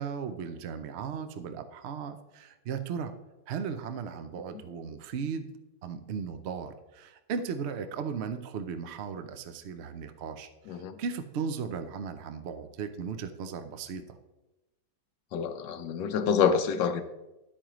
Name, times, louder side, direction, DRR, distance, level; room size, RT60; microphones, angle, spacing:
voice 1, 0.0-3.1 3.5-5.5 5.8-14.0, right 6 dB, 65° right, 9 dB, 0.6 m, -36 dB
voice 2, 10.7-11.0 15.3-17.0, left 7 dB, 80° left, 9 dB, 1.4 m, -27 dB
10.5 x 8.6 x 3.0 m, 1.0 s
omnidirectional pair, 1.9 m